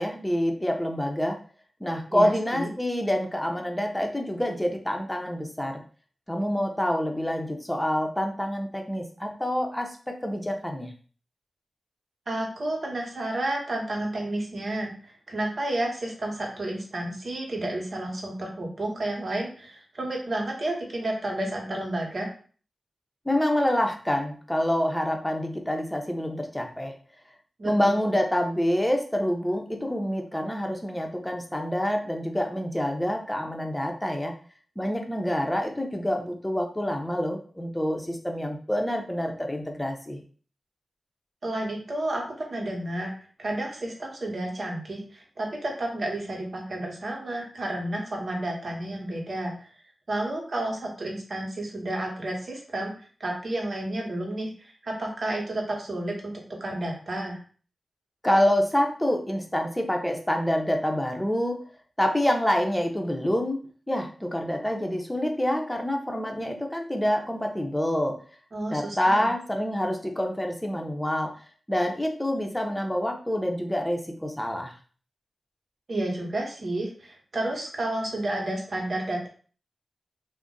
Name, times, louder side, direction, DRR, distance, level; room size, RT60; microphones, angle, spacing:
voice 1, 0.0-1.4 1.8-5.8 6.3-10.9 23.3-26.9 27.6-34.3 34.8-40.2 58.2-61.6 62.0-63.6 63.9-68.2 68.7-71.3 71.7-74.7, equal, 10° left, 3 dB, 0.7 m, -27 dB
voice 2, 2.1-2.7 12.3-22.3 27.6-28.2 41.4-43.1 43.4-49.7 50.1-52.9 53.2-56.3 56.6-57.4 68.5-69.3 75.9-79.3, right 1 dB, 60° right, 0 dB, 1.0 m, -31 dB
2.5 x 2.1 x 3.8 m, 0.42 s
cardioid pair, 45°, 0 cm